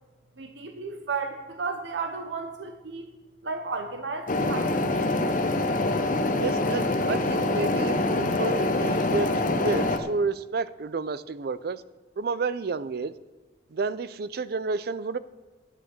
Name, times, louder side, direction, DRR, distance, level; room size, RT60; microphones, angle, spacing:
voice 1, 0.4-3.1 3.4-5.2, right 4 dB, 75° right, 6 dB, 0.8 m, -34 dB
sound 1, 4.3-10.0, left 2 dB, 45° left, 0.9 m, -25 dB
voice 2, 6.4-9.3 9.6-11.8 12.2-13.2 13.7-15.2, right 4 dB, 60° right, 16 dB, 0.5 m, -30 dB
9.4 x 8.9 x 6.6 m, 1.2 s
head